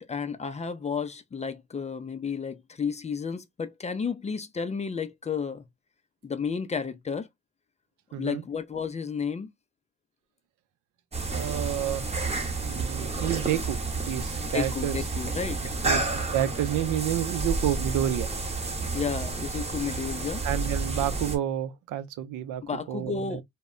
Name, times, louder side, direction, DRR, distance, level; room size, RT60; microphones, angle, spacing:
voice 1, 0.0-5.6 6.2-7.3 8.1-9.5 14.5-15.8 18.9-20.4 22.6-23.4, left 6 dB, 25° left, 0.4 m, -32 dB
voice 2, 8.1-8.4 11.3-12.1 12.6-13.8 14.1-15.0 15.8-16.0 16.3-18.3 20.4-22.6 22.9-23.4, right 11 dB, 80° right, 0.6 m, -29 dB
sound 1, 11.1-21.4, right 3 dB, 20° right, 0.8 m, -30 dB
2.2 x 2.0 x 3.5 m
cardioid pair, 90°, 30 cm